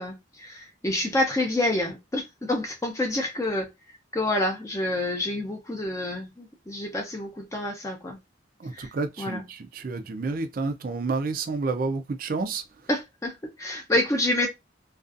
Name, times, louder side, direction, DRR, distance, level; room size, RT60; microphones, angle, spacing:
voice 1, 0.0-3.7 4.1-8.2 8.7-8.9 9.2-9.4 12.9-14.5, left 1 dB, 15° left, 0.5 m, -28 dB
voice 2, 8.6-12.6, right 3 dB, 50° right, 0.4 m, -30 dB
2.5 x 2.3 x 2.4 m
head